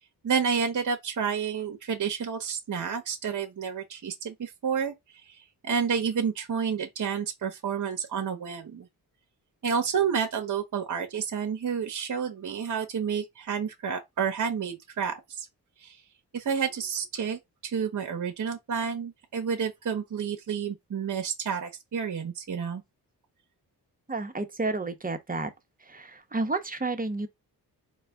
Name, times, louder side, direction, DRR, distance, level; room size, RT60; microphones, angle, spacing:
voice 1, 0.2-4.9 5.3-8.9 9.6-15.5 15.8-16.0 16.3-22.8, right 6 dB, 50° right, 0.9 m, -30 dB
voice 2, 24.1-25.5 25.8-27.3, right 3 dB, 20° right, 0.9 m, -31 dB
4.0 x 2.2 x 3.5 m
cardioid pair, 65°, 40 cm